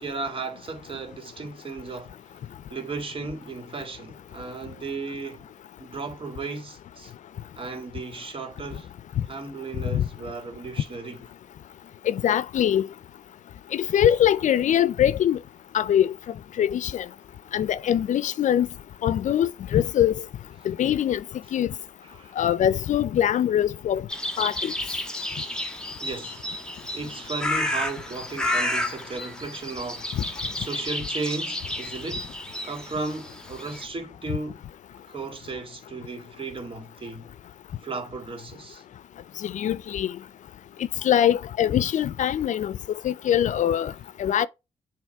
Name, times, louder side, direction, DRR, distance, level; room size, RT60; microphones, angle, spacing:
voice 1, 0.0-5.5 5.8-7.1 7.6-8.9 9.3-11.3 22.0-22.4 25.5-26.5 26.9-32.4 32.6-34.6 35.1-37.3 37.8-38.8, right 3 dB, 45° right, 2.1 m, -35 dB
voice 2, 12.1-12.9 13.7-15.4 15.7-16.1 16.6-17.0 17.5-18.7 19.0-20.1 20.7-21.2 21.5-21.7 22.4-24.0 24.4-24.7 30.2-30.3 39.4-40.1 41.0-42.8 43.0-43.9 44.2-44.5, left 10 dB, 70° left, 0.4 m, -22 dB
sound 1, 24.1-33.8, left 1 dB, 5° left, 1.5 m, -31 dB
7.2 x 3.0 x 4.5 m
cardioid pair, 75°, 13 cm